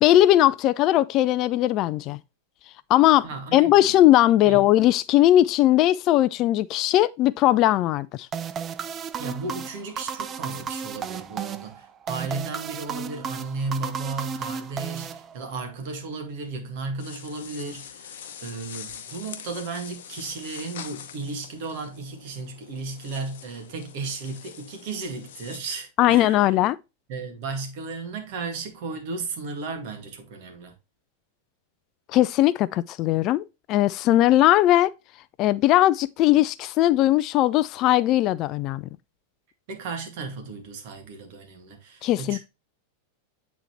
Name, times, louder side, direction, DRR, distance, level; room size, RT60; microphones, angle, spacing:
voice 1, 0.0-2.2 2.9-3.3 3.5-8.3 26.0-26.8 32.1-34.9 35.4-38.9 42.0-42.4, left 14 dB, 35° left, 0.3 m, -19 dB
voice 2, 3.2-4.0 4.4-4.7 9.2-26.6 27.1-30.7 39.7-42.4, right 4 dB, 50° right, 2.0 m, -34 dB
sound 1, 8.3-15.7, right 7 dB, 25° right, 0.5 m, -34 dB
sound 2, 17.0-25.6, left 9 dB, 55° left, 0.8 m, -43 dB
8.9 x 4.1 x 3.0 m
figure-of-eight pair, 90°, 0 cm